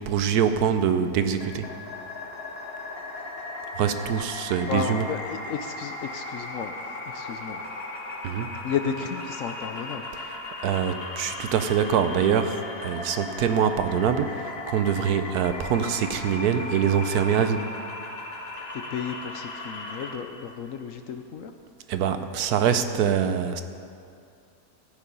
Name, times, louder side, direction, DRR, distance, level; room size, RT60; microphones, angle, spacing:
voice 1, 0.0-1.7 3.7-5.1 8.2-8.5 10.1-17.7 21.9-23.6, right 8 dB, 75° right, 9 dB, 1.1 m, -24 dB
sound 1, 1.4-20.1, left 2 dB, 40° left, 1.2 m, -37 dB
voice 2, 4.7-6.7 7.1-7.6 8.6-10.0 18.7-21.5, left 7 dB, 65° left, 6 dB, 0.9 m, -33 dB
14.5 x 9.5 x 5.4 m, 2.5 s
omnidirectional pair, 1.8 m